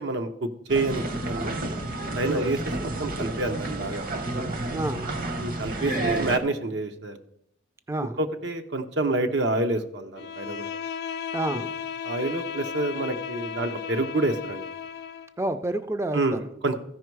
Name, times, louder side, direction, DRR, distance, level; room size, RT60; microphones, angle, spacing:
voice 1, 0.0-1.6 2.1-4.0 5.4-7.2 8.2-10.7 11.5-11.6 12.0-14.6 16.1-16.8, right 2 dB, 80° right, 6 dB, 0.8 m, -28 dB
sound 1, 0.7-6.4, right 2 dB, 50° right, 0.9 m, -30 dB
voice 2, 4.7-5.1 7.9-8.2 11.3-11.7 15.4-16.4, right 1 dB, 15° right, 10 dB, 0.4 m, -29 dB
Bowed string instrument, 10.2-15.3, left 7 dB, 60° left, 0.5 m, -35 dB
14.5 x 5.3 x 4.7 m, 0.74 s
head